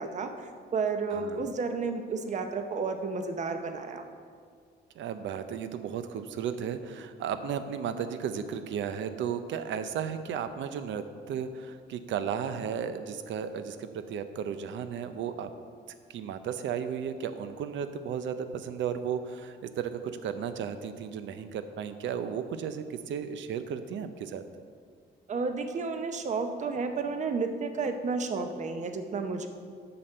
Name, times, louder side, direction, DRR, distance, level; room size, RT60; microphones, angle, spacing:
voice 1, 0.0-4.0 25.3-29.5, right 4 dB, 40° right, 7 dB, 0.7 m, -32 dB
voice 2, 1.1-1.4 4.9-15.5 16.1-24.4, right 7 dB, 85° right, 10 dB, 0.6 m, -34 dB
8.0 x 5.9 x 6.5 m, 2.1 s
cardioid pair, 155°, 19 cm